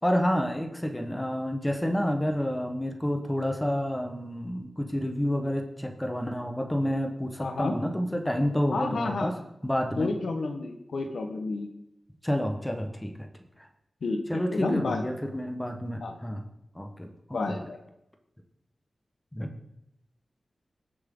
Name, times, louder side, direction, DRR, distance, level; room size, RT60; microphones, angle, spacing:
voice 1, 0.0-9.3 9.6-10.1 12.2-13.3 13.6-13.7 14.3-16.4 16.7-17.4 19.3-19.5, equal, 10° left, 4 dB, 1.3 m, -29 dB
voice 2, 7.4-7.7 8.7-9.3 10.0-11.7 14.0-15.0 16.0-16.1 17.3-17.8, left 3 dB, 85° left, 4 dB, 1.3 m, -30 dB
19.5 x 7.6 x 3.9 m, 0.83 s
wide cardioid pair, 125°, 0 cm